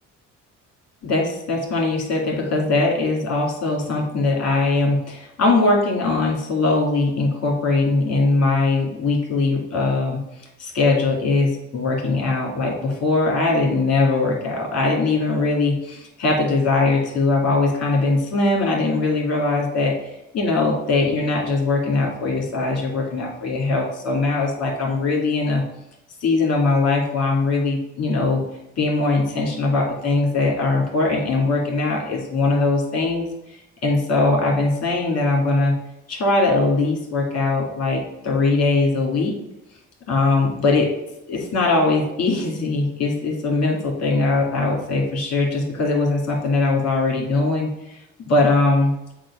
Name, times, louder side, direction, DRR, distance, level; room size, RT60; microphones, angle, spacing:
voice 1, 1.0-10.2 10.6-25.6 26.2-28.4 28.8-33.6 33.8-35.8 36.1-39.3 40.1-40.9 41.3-48.0 48.3-48.9, left 3 dB, 55° left, 0 dB, 2.2 m, -21 dB
7.4 x 2.6 x 5.5 m, 0.85 s
cardioid pair, 90°, 30 cm